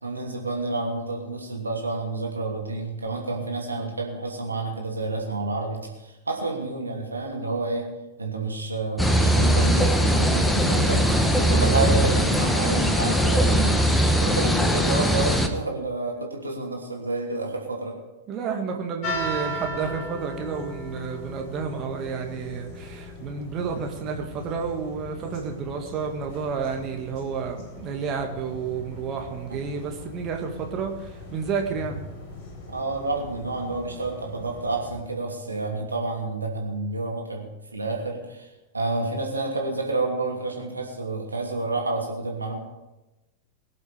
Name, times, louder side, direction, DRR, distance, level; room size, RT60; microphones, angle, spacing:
voice 1, 0.0-7.9 8.2-13.8 14.2-18.0 32.7-38.5 38.7-42.6, right 3 dB, 80° right, 0 dB, 2.9 m, -29 dB
sound 1, 9.0-15.5, equal, 5° left, 1.3 m, -20 dB
voice 2, 18.3-32.0, right 6 dB, 35° right, 3 dB, 1.9 m, -31 dB
sound 2, 19.0-35.0, left 1 dB, 45° left, 4.1 m, -38 dB
22.0 x 7.5 x 5.1 m, 1.0 s
figure-of-eight pair, 90°, 0 cm